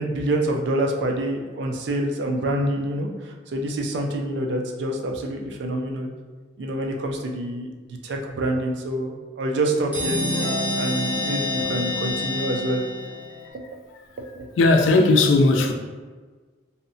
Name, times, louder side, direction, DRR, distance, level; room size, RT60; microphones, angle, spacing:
voice 1, 0.0-6.1 6.6-10.2 10.8-12.8 14.2-14.5, right 1 dB, 65° right, 2 dB, 0.3 m, -26 dB
sound 1, 9.9-13.5, left 1 dB, 5° right, 0.6 m, -27 dB
voice 2, 14.6-15.7, left 2 dB, 90° left, 4 dB, 0.3 m, -17 dB
2.7 x 2.0 x 2.6 m, 1.4 s
head